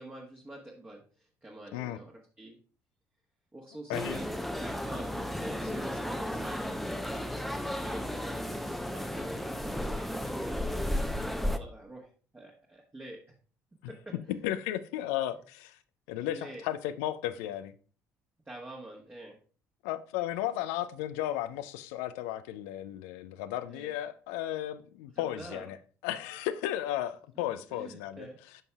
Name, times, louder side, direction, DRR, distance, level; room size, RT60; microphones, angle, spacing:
voice 1, 0.0-2.1 2.4-2.6 3.5-13.2 13.9-14.4 16.3-16.6 18.4-19.3 23.7-23.9 25.1-25.6 27.7-28.4, right 1 dB, 20° right, 1.4 m, -46 dB
sound 1, 3.9-11.6, left 1 dB, ahead, 0.7 m, -34 dB
voice 2, 14.4-15.8 16.1-17.7 19.8-25.8 26.0-28.3, left 13 dB, 70° left, 0.4 m, -34 dB
11.0 x 5.4 x 2.3 m
hypercardioid pair, 55°, 8 cm